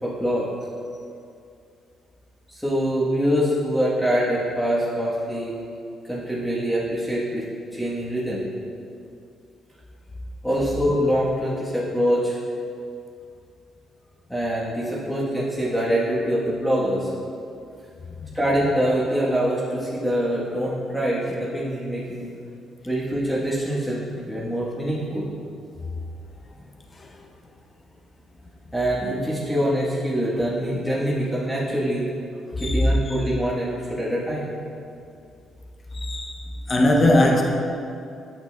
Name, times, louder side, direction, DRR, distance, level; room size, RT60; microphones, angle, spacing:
voice 1, 0.0-0.5 2.5-5.5 6.0-7.5 7.7-8.5 10.4-12.4 14.3-17.1 18.3-22.3 22.8-25.3 28.7-32.1 32.6-34.5, equal, 5° left, -8 dB, 1.2 m, -24 dB
voice 2, 32.6-32.9 35.9-37.4, left 1 dB, 30° left, 1 dB, 0.6 m, -19 dB
8.7 x 6.0 x 2.3 m, 2.5 s
cardioid pair, 90°, 0 cm